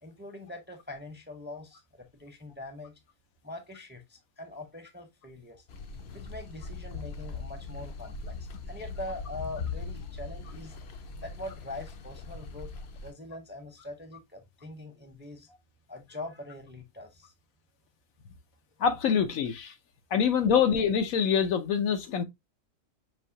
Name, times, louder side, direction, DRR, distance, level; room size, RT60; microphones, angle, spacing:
voice 1, 0.0-3.0 3.4-5.6 6.1-10.7 11.2-12.7 13.0-15.5 15.9-17.3, left 2 dB, 10° right, 0.6 m, -43 dB
sound 1, 5.7-13.1, left 4 dB, 60° left, 0.8 m, -40 dB
voice 2, 18.8-19.7 20.1-22.2, left 7 dB, 85° left, 1.2 m, -25 dB
5.4 x 2.7 x 2.6 m
omnidirectional pair, 1.4 m